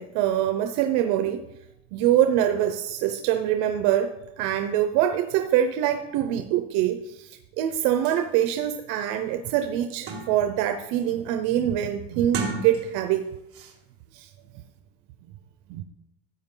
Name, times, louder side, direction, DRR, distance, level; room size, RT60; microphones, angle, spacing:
voice 1, 0.0-1.4 1.9-13.3 14.1-14.3 15.7-15.8, right 11 dB, 80° right, 7 dB, 0.8 m, -24 dB
sound 1, 7.7-7.8 8.1-8.2 8.8-8.9 9.3-10.6 11.0-11.4 12.2-13.2 13.5-13.8, right 4 dB, 40° right, 1.5 m, -35 dB
14.0 x 8.8 x 3.8 m, 0.90 s
cardioid pair, 160°, 37 cm